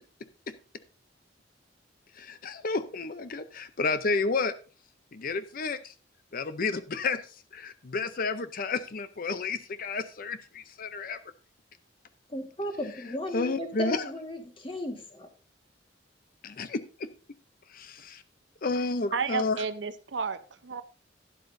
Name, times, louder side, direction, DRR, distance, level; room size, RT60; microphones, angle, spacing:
voice 1, 2.1-4.5 5.1-5.9 6.3-11.2 13.3-14.0 16.4-17.1 17.7-18.2 18.6-19.6, left 4 dB, 50° left, 12 dB, 0.6 m, -31 dB
voice 2, 12.3-15.3, equal, 30° left, 4 dB, 1.6 m, -35 dB
voice 3, 19.1-20.8, right 5 dB, 75° right, 12 dB, 0.8 m, -32 dB
12.0 x 11.0 x 2.6 m, 0.35 s
head